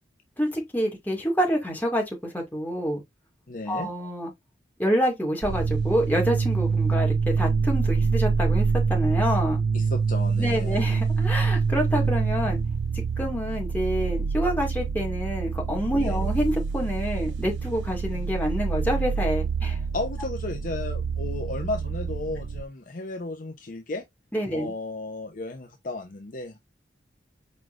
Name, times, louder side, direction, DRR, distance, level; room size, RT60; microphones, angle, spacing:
voice 1, 0.4-3.0 3.7-4.3 4.8-9.6 10.4-12.6 13.2-19.8 24.3-24.7, equal, 10° left, 2.0 m, -27 dB
voice 2, 3.5-3.9 9.7-10.8 16.0-16.2 19.9-24.0 24.5-26.6, left 2 dB, 50° left, 0.7 m, -34 dB
sound 1, 5.4-22.6, right 5 dB, 85° right, 0.5 m, -26 dB
4.8 x 4.0 x 2.5 m
head